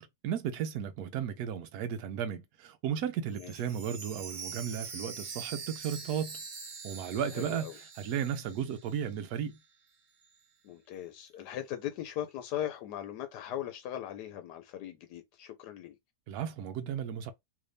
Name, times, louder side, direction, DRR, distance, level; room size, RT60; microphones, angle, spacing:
voice 1, 0.0-6.4 6.8-9.6 16.3-17.3, right 8 dB, 75° right, 1.1 m, -35 dB
Chime, 3.3-9.2 9.5-9.6 10.2-10.3, right 5 dB, 55° right, 1.2 m, -44 dB
voice 2, 7.4-7.8 10.6-16.0, left 11 dB, 90° left, 1.2 m, -39 dB
3.1 x 2.6 x 3.3 m
omnidirectional pair, 1.7 m